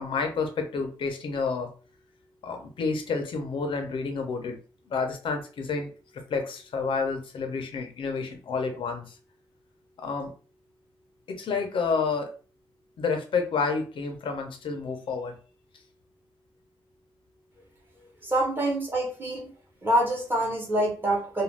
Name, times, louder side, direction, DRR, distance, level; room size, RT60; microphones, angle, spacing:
voice 1, 0.0-1.7 2.4-4.6 4.9-5.9 6.3-9.1 10.0-10.3 11.3-12.3 13.0-15.3, left 4 dB, 70° left, 5 dB, 0.5 m, -29 dB
voice 2, 18.2-19.5 19.8-21.4, right 1 dB, 20° right, -2 dB, 0.9 m, -26 dB
2.4 x 2.2 x 3.2 m, 0.39 s
wide cardioid pair, 165°, 9 cm